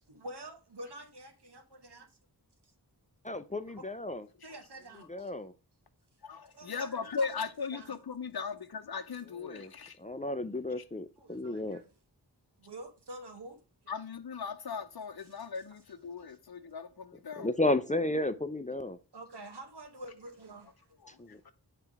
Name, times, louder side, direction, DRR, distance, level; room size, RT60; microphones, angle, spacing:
voice 1, 0.1-2.0 3.8-3.9 4.4-5.3 6.5-8.0 11.2-12.0 12.6-14.0 15.2-15.6 16.2-16.4 19.1-20.9, right 1 dB, 75° right, 1.3 m, -48 dB
voice 2, 3.2-4.2 5.1-5.5 9.4-9.7 10.0-11.8 17.4-19.0 21.2-21.4, left 2 dB, 20° left, 0.5 m, -33 dB
voice 3, 6.2-10.0 13.9-17.5 21.0-21.2 21.4-21.5, left 5 dB, 65° left, 0.8 m, -38 dB
7.0 x 3.4 x 4.6 m
wide cardioid pair, 45°, 41 cm